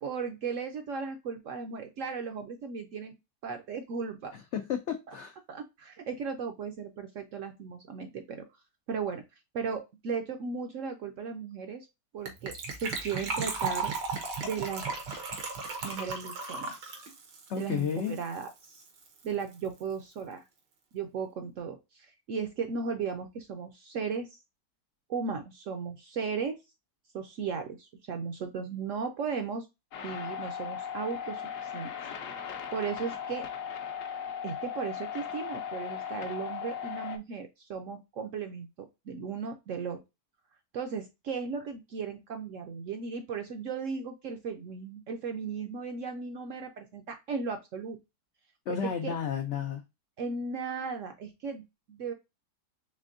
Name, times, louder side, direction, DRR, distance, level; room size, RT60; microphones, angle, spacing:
voice 1, 0.0-3.2 3.4-4.3 5.5-8.4 8.9-9.2 9.5-11.9 12.1-12.5 12.8-13.9 14.4-14.9 15.8-16.9 17.6-18.8 19.2-20.4 20.9-24.4 25.1-26.6 27.1-29.7 30.0-31.9 32.7-33.5 34.4-40.0 40.7-48.0 48.7-49.1 50.2-52.1, right 5 dB, 70° right, 6 dB, 0.7 m, -36 dB
voice 2, 4.3-5.4 17.5-18.2 48.7-49.8, left 8 dB, 90° left, 5 dB, 0.6 m, -32 dB
Gurgling / Trickle dribble / Fill (with liquid), 12.3-18.5 18.7-18.8 19.0-19.2 19.5-19.6, right 4 dB, 90° right, 1.7 m, -35 dB
sound 1, 29.9-37.2, left 7 dB, 65° left, 0.9 m, -37 dB
4.3 x 3.3 x 2.5 m, 0.23 s
omnidirectional pair, 1.8 m